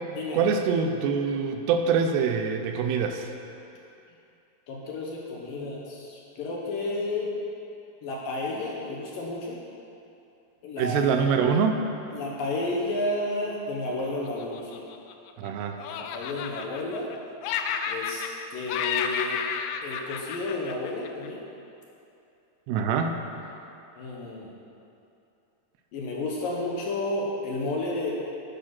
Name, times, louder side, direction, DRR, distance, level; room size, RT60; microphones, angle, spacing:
voice 1, 0.3-3.3 10.8-11.8 15.4-15.8 22.7-23.1, right 6 dB, 80° right, 5 dB, 2.7 m, -24 dB
voice 2, 4.7-7.3 8.0-9.6 10.6-11.1 12.1-14.8 16.0-17.1 17.9-18.2 18.5-19.4 19.8-21.4 24.0-24.5 25.9-28.1, left 2 dB, 70° left, -2 dB, 2.4 m, -31 dB
Laughter, 14.2-15.5 15.8-17.2 17.4-18.4 18.7-21.3, left 7 dB, 85° left, 2.4 m, -32 dB
11.5 x 10.0 x 5.9 m, 2.7 s
omnidirectional pair, 5.0 m